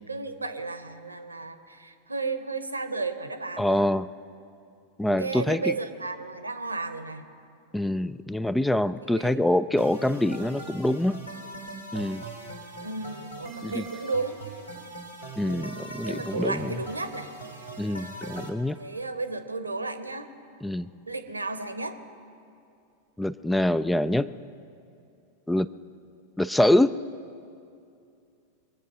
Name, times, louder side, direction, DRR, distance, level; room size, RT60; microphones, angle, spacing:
voice 1, 0.0-3.9 5.1-7.2 9.1-9.4 12.8-14.4 15.4-17.3 18.7-20.3 21.1-22.0, right 3 dB, 80° right, 10 dB, 0.9 m, -33 dB
voice 2, 3.6-4.1 5.0-5.8 7.7-11.2 11.9-12.2 13.6-13.8 15.4-16.7 17.8-18.8 20.6-20.9 23.2-24.3 25.5-25.7 26.4-26.9, left 1 dB, 5° left, 16 dB, 0.3 m, -25 dB
sound 1, 9.8-18.5, right 2 dB, 85° left, 2.8 m, -41 dB
23.5 x 8.2 x 5.9 m, 2.5 s
figure-of-eight pair, 90°, 0 cm